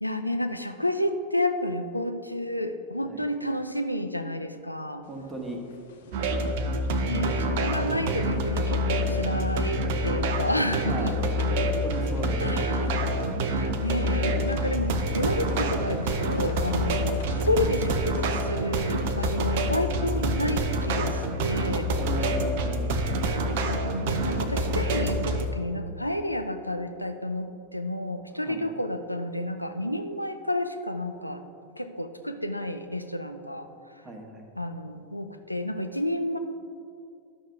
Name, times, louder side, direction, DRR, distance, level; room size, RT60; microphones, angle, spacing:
voice 1, 0.0-5.0 7.0-11.1 12.4-12.9 13.4-21.9 23.6-31.4 31.8-33.7 34.6-36.4, left 1 dB, 90° left, 8 dB, 0.5 m, -30 dB
sound 1, 5.0-7.3 7.6-7.8 8.1-19.3, left 3 dB, 60° left, 0.9 m, -43 dB
voice 2, 5.1-5.6 10.9-11.2 11.5-12.4 16.8-16.9 22.0-23.1 28.4-28.6 34.0-34.5, right 2 dB, 15° right, 2 dB, 1.5 m, -37 dB
sound 2, 6.1-25.5, equal, 50° right, 0.7 m, -27 dB
11.5 x 6.4 x 4.6 m, 2.4 s
figure-of-eight pair, 90°, 0 cm